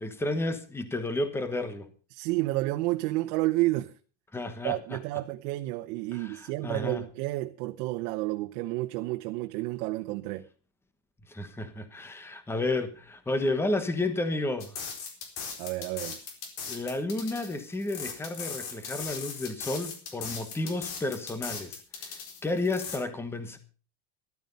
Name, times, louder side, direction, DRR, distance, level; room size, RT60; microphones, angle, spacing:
voice 1, 0.0-1.9 4.3-5.0 6.1-7.1 11.3-14.8 16.7-23.6, left 2 dB, 5° left, 1.1 m, -32 dB
voice 2, 2.1-3.9 4.6-10.4 15.6-16.2, right 18 dB, 85° right, 1.1 m, -30 dB
sound 1, 14.6-23.0, left 6 dB, 60° left, 4.2 m, -39 dB
13.5 x 12.0 x 5.4 m
cardioid pair, 175°, 45 cm